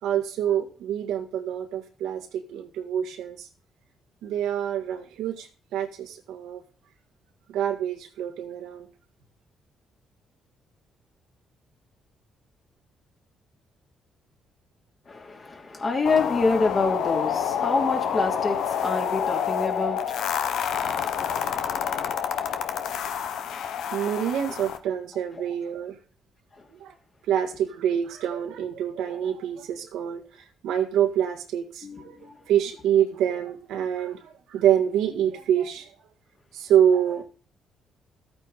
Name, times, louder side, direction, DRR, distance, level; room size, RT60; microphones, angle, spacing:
voice 1, 0.0-3.5 4.2-6.6 7.5-8.9 23.9-26.0 26.8-26.9 27.3-35.9 36.5-37.2, right 9 dB, 90° right, 1.8 m, -26 dB
voice 2, 15.1-24.1 25.4-25.5 31.8-32.4, left 3 dB, 40° left, 2.8 m, -29 dB
sound 1, 16.1-24.8, left 8 dB, 80° left, 1.0 m, -28 dB
13.5 x 9.0 x 4.1 m
cardioid pair, 90°, 0 cm